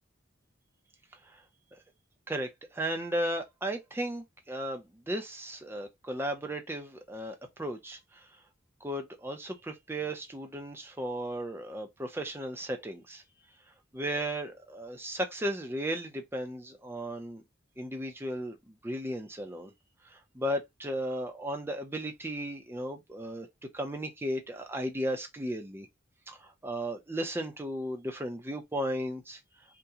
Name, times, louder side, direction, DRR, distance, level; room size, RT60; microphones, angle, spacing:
voice 1, 2.3-8.0 8.8-13.2 13.9-17.4 17.8-19.7 20.1-23.5 23.7-25.9 26.3-29.4, right 1 dB, 10° right, 0.6 m, -35 dB
2.8 x 2.2 x 3.6 m
head